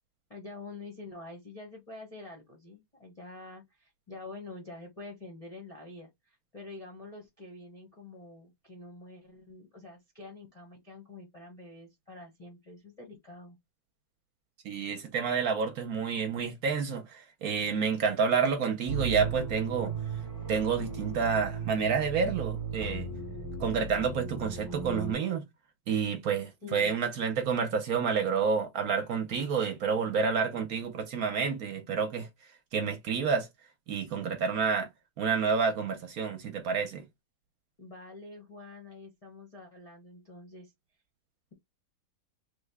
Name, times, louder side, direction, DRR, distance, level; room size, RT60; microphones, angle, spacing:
voice 1, 0.3-13.6 26.6-27.0 37.8-40.7, left 2 dB, 40° left, 0.5 m, -47 dB
voice 2, 14.6-19.9 20.5-23.1 23.6-25.5 25.9-32.3 32.7-33.5 33.9-34.9 35.2-37.0, right 6 dB, 65° right, 1.0 m, -29 dB
sound 1, 18.9-25.1, right 5 dB, 25° right, 1.0 m, -36 dB
3.4 x 2.1 x 3.3 m
omnidirectional pair, 1.9 m